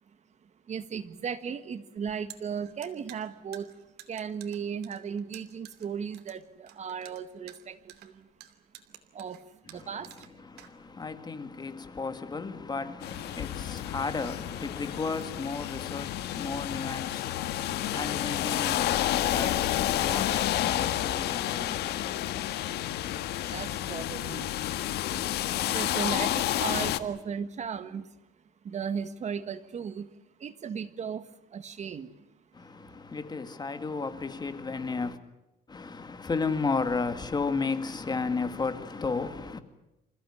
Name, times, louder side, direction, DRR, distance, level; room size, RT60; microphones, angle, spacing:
voice 1, 0.4-3.7 4.1-8.3 9.1-9.4 9.7-10.3 23.4-24.5 25.7-28.1 28.6-30.1 30.4-32.1, right 7 dB, 45° right, 1.6 m, -36 dB
sound 1, 2.0-11.2, right 12 dB, 75° right, 2.8 m, -51 dB
voice 2, 10.5-22.5 32.5-35.2 35.7-39.6, left 4 dB, 25° left, 2.2 m, -34 dB
sound 2, 13.0-27.0, left 13 dB, 75° left, 1.5 m, -30 dB
28.0 x 16.0 x 9.9 m
cardioid pair, 110°, 17 cm